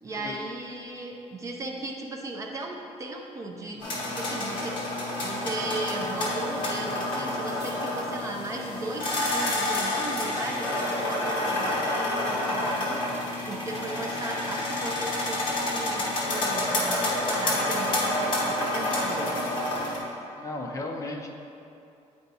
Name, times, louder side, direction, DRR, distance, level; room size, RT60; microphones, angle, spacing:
voice 1, 0.0-4.7 5.2-19.3, right 2 dB, 25° right, 1 dB, 0.4 m, -37 dB
sound 1, 3.8-20.0, left 1 dB, 40° left, 1.3 m, -28 dB
voice 2, 20.3-21.3, left 2 dB, 25° left, 1 dB, 0.5 m, -35 dB
9.4 x 4.5 x 2.7 m, 2.7 s
cardioid pair, 175°, 13 cm